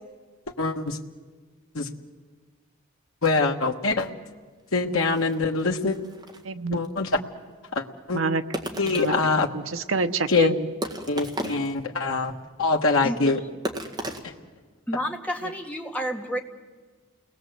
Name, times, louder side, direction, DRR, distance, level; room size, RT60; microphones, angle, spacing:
voice 1, 0.6-1.0 1.7-1.9 3.2-4.1 4.7-6.0 6.7-7.1 7.7-8.2 8.8-9.5 10.3-10.5 11.1-12.3 12.6-13.4, left 4 dB, 90° left, 2 dB, 1.3 m, -24 dB
sound 1, 4.6-4.7 4.9-6.4 6.8-6.9 8.5-9.4 10.0-10.1 10.8-11.8 12.2-12.3 13.6-14.2, right 1 dB, 20° right, 1.8 m, -34 dB
voice 2, 6.4-6.8 8.1-9.1 9.5-10.7 15.4-15.5, right 3 dB, 80° right, 9 dB, 1.0 m, -27 dB
voice 3, 14.9-16.4, equal, 5° left, 1 dB, 1.8 m, -30 dB
29.5 x 19.5 x 8.0 m, 1.4 s
head